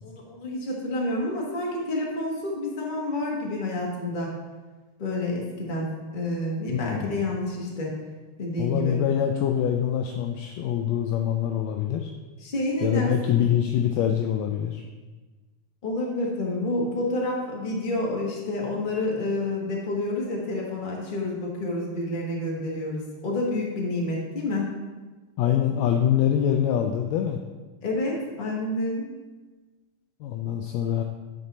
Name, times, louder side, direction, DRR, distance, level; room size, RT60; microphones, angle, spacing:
voice 1, 0.0-4.3 5.0-5.9 6.1-7.9 8.4-9.0 12.4-13.3 15.8-24.7 27.8-29.1, left 1 dB, 45° left, -2 dB, 0.6 m, -29 dB
voice 2, 6.7-7.1 8.6-12.1 12.8-14.8 25.4-27.4 30.2-31.0, left 9 dB, 80° left, 4 dB, 1.6 m, -24 dB
11.0 x 4.4 x 4.1 m, 1.3 s
omnidirectional pair, 3.4 m